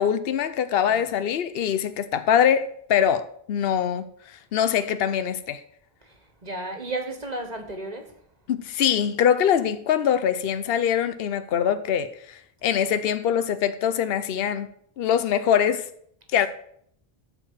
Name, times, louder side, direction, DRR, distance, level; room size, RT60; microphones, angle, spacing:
voice 1, 0.0-5.6 8.5-14.7 15.0-15.9 16.3-16.5, left 9 dB, 70° left, 0.9 m, -23 dB
voice 2, 6.4-8.1, right 2 dB, 40° right, 1.6 m, -33 dB
12.5 x 4.7 x 7.5 m
omnidirectional pair, 1.1 m